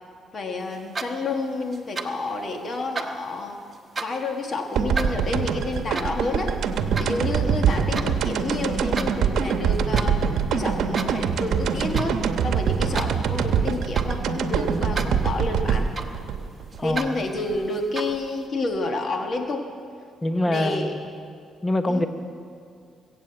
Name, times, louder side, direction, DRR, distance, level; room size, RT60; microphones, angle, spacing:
voice 1, 0.3-3.6 4.0-6.5 7.0-15.9 16.8-19.7 20.4-20.9 21.9-22.1, left 2 dB, 45° left, 4 dB, 1.3 m, -29 dB
sound 1, 0.7-1.4 1.7-2.3 2.7-4.3 4.7-8.1 8.6-9.1 9.4-10.2 10.7-11.3 11.6-12.2 12.5-14.3 14.7-15.3 15.5-16.4 16.7-17.1 17.7-18.3, right 4 dB, 30° right, 1.1 m, -34 dB
sound 2, 4.7-17.6, right 6 dB, 75° right, 0.9 m, -24 dB
voice 2, 16.8-17.1 20.2-21.1 21.6-22.1, left 1 dB, 20° left, 8 dB, 0.8 m, -24 dB
21.0 x 8.4 x 7.7 m, 2.3 s
cardioid pair, 90°, 0 cm